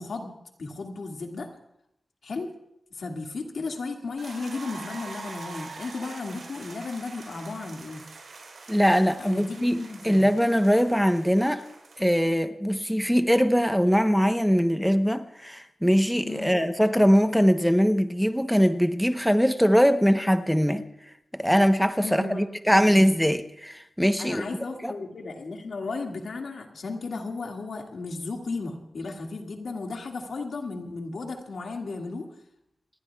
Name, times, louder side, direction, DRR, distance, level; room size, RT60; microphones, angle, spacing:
voice 1, 0.0-1.5 2.2-2.5 2.9-8.0 9.2-10.3 16.2-16.5 22.0-22.5 24.2-32.3, left 3 dB, 75° left, 2 dB, 2.0 m, -35 dB
sound 1, 4.2-12.3, right 3 dB, 75° right, 4.2 m, -44 dB
voice 2, 8.7-11.6 12.0-20.8 21.3-24.4 24.8-24.9, equal, ahead, 8 dB, 0.9 m, -22 dB
29.0 x 19.5 x 2.4 m, 0.81 s
wide cardioid pair, 75°, 0 cm